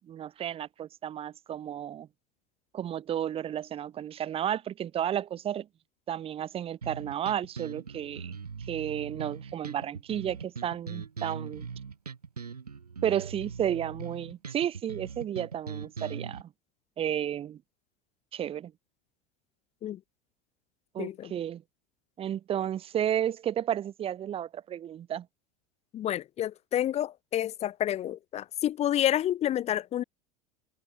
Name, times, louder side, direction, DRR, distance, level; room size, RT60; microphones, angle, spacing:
voice 1, 0.1-2.1 2.7-5.7 6.1-8.4 8.7-11.7 13.0-16.5 17.0-17.6 18.3-18.7 20.9-21.6 22.2-25.3, right 10 dB, 30° right, 1.8 m, -32 dB
sound 1, 6.8-16.4, right 6 dB, 80° right, 1.0 m, -41 dB
voice 2, 21.0-21.3 25.9-30.0, left 11 dB, 35° left, 2.5 m, -29 dB
figure-of-eight pair, 80°, 20 cm